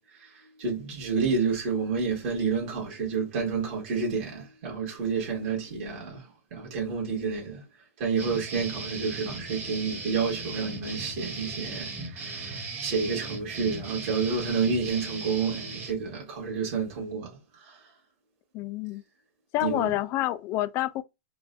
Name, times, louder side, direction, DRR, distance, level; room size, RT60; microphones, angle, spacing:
voice 1, 0.1-17.9 19.6-19.9, right 5 dB, 50° right, 1.6 m, -30 dB
sound 1, 8.2-15.9, right 3 dB, 20° right, 1.1 m, -37 dB
voice 2, 18.5-19.0 19.5-21.0, left 15 dB, 30° left, 0.3 m, -28 dB
4.6 x 2.2 x 2.5 m
hypercardioid pair, 145°, 8 cm